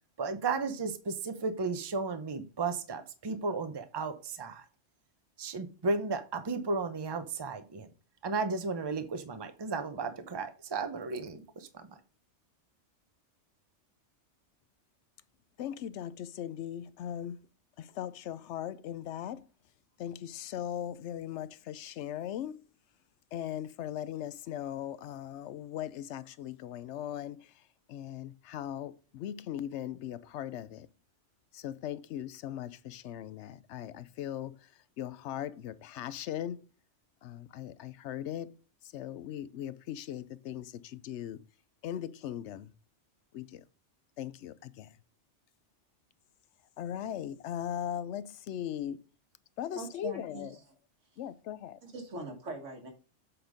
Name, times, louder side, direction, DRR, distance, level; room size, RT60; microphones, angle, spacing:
voice 1, 0.2-4.6 5.4-7.9 8.2-11.8, right 4 dB, 25° right, 0.7 m, -34 dB
voice 2, 15.6-17.4 17.8-19.5 20.0-22.6 23.3-27.6 27.9-30.9 31.5-36.7 37.2-38.5 38.8-41.4 41.8-42.7 43.3-43.6 44.2-45.0 46.8-49.0 49.6-50.6 51.2-51.8, left 10 dB, 75° left, 0.8 m, -39 dB
voice 3, 49.7-50.5 51.8-52.9, right 3 dB, 85° right, 2.1 m, -41 dB
7.9 x 3.9 x 5.0 m
omnidirectional pair, 1.2 m